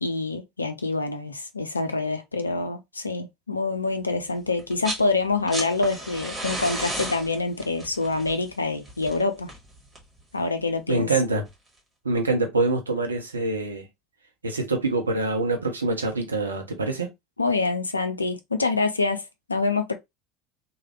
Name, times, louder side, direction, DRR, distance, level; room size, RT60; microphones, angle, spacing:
voice 1, 0.0-9.5 10.3-11.1 17.4-19.9, left 3 dB, 85° left, 0.4 m, -26 dB
sound 1, 4.6-5.1 5.3-10.2 11.5-11.6, right 1 dB, 15° right, 1.4 m, -34 dB
voice 2, 10.9-11.4 12.0-13.9 14.4-17.1, right 3 dB, 80° right, 0.7 m, -25 dB
3.2 x 2.2 x 2.9 m
figure-of-eight pair, 70°, 0 cm